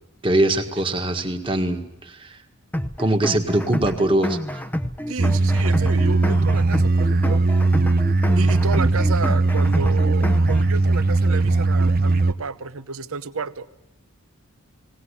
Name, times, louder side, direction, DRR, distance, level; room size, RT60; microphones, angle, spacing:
voice 1, 0.2-2.4 3.0-4.6, right 1 dB, 25° right, 5 dB, 1.7 m, -22 dB
sound 1, 2.7-10.7, equal, 5° left, 0.8 m, -29 dB
voice 2, 5.1-7.4 8.3-13.7, right 4 dB, 70° right, 13 dB, 0.9 m, -31 dB
sound 2, 5.2-12.3, right 2 dB, 40° right, 0.8 m, -19 dB
19.0 x 18.5 x 9.9 m, 0.91 s
head